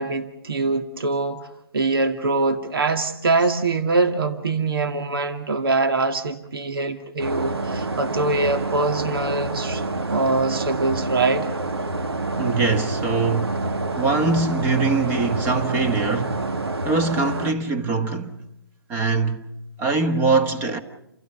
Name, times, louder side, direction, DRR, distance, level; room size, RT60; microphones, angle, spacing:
voice 1, 0.0-1.4 1.7-9.8 10.1-11.5, right 3 dB, 65° right, 2.1 m, -23 dB
sound 1, 7.2-17.5, right 2 dB, 85° right, 1.6 m, -27 dB
voice 2, 12.4-13.7 14.0-16.5 16.8-18.4 18.9-19.4 19.8-20.8, right 3 dB, 15° right, 1.4 m, -23 dB
29.0 x 16.0 x 6.6 m
hypercardioid pair, 150°, 13 cm